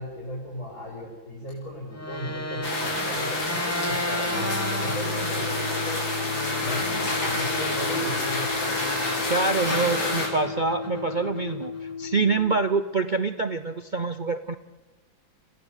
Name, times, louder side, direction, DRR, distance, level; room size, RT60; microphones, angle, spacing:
voice 1, 0.0-6.0 6.6-8.6, equal, 50° left, -4 dB, 6.6 m, -36 dB
sound 1, 1.9-9.3 9.7-12.0, left 1 dB, 10° left, 0.9 m, -34 dB
sound 2, 2.6-10.3, left 2 dB, 90° left, 4.9 m, -29 dB
sound 3, 4.3-12.4, left 4 dB, 70° left, 4.4 m, -34 dB
voice 2, 9.3-14.6, right 4 dB, 55° right, 10 dB, 0.5 m, -26 dB
27.5 x 16.0 x 8.4 m, 1.3 s
omnidirectional pair, 2.1 m